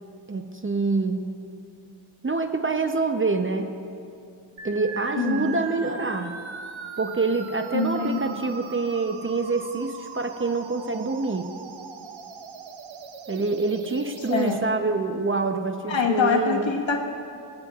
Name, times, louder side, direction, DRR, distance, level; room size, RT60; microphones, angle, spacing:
voice 1, 0.3-1.3 2.2-3.7 4.6-6.4 7.0-11.5 13.3-16.7, right 3 dB, 25° right, 6 dB, 0.7 m, -26 dB
sound 1, 4.6-14.6, right 5 dB, 70° right, 1.0 m, -40 dB
voice 2, 5.2-5.5 7.7-8.2 14.3-14.6 15.9-17.1, left 5 dB, 65° left, 0 dB, 1.6 m, -24 dB
24.5 x 8.8 x 2.4 m, 2.6 s
cardioid pair, 75°, 49 cm